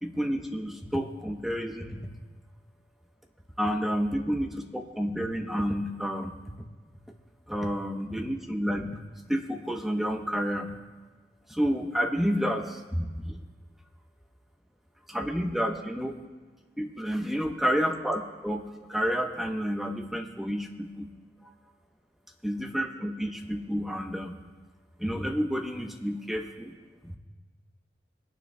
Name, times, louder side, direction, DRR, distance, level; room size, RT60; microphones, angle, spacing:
voice 1, 0.0-2.0 3.6-6.4 7.5-9.0 9.3-10.7 11.5-13.4 15.1-16.2 16.8-18.6 18.9-21.1 21.4-21.5 22.4-24.4 25.0-26.7 27.0-27.2, equal, ahead, 2 dB, 0.8 m, -30 dB
25.0 x 9.3 x 2.2 m, 1.3 s
head